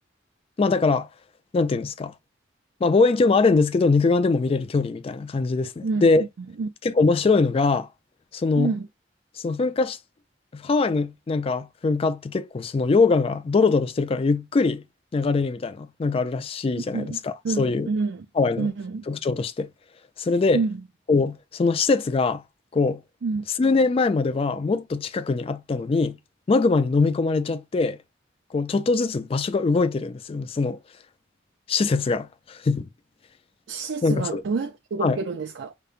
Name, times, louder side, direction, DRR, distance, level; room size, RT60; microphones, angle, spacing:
voice 1, 0.6-1.1 1.5-2.1 2.8-6.2 6.8-7.9 8.3-8.7 9.4-10.0 10.5-14.8 15.1-17.9 18.4-18.7 19.1-19.7 20.2-20.6 21.1-22.4 22.7-23.0 23.6-26.2 26.5-28.0 28.5-30.8 31.7-32.9 34.0-34.4 35.0-35.2, left 3 dB, 30° left, 0.3 m, -22 dB
voice 2, 5.8-6.7 8.6-8.9 16.8-18.3 18.6-19.0 20.5-20.8 23.2-23.5 33.7-35.7, right 4 dB, 70° right, 0.4 m, -28 dB
5.1 x 2.2 x 2.4 m
head